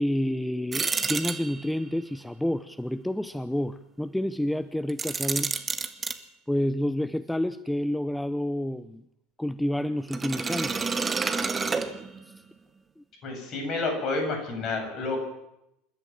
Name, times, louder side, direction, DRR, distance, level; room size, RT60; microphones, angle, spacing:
voice 1, 0.0-5.6 6.5-9.0 9.4-10.9 13.0-13.1, left 1 dB, 5° left, 14 dB, 0.7 m, -29 dB
sound 1, 0.7-1.9 4.9-6.2 10.1-12.4, right 4 dB, 20° right, 1.7 m, -29 dB
voice 2, 13.2-15.2, left 3 dB, 40° left, 4 dB, 8.0 m, -29 dB
27.5 x 12.5 x 7.6 m, 0.84 s
figure-of-eight pair, 75°, 0 cm